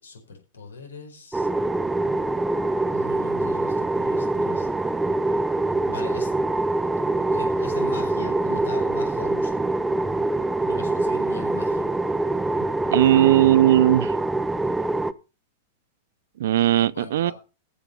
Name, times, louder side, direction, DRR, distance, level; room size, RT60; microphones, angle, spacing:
voice 1, 0.0-1.5 2.9-4.9 5.8-6.3 7.3-9.6 10.6-11.9 16.7-17.3, left 3 dB, 80° left, 4.7 m, -40 dB
sound 1, 1.3-15.1, right 2 dB, 10° right, 0.7 m, -24 dB
voice 2, 12.9-14.1 16.4-17.3, right 13 dB, 65° right, 0.5 m, -18 dB
14.5 x 5.9 x 5.7 m
figure-of-eight pair, 95°, 0 cm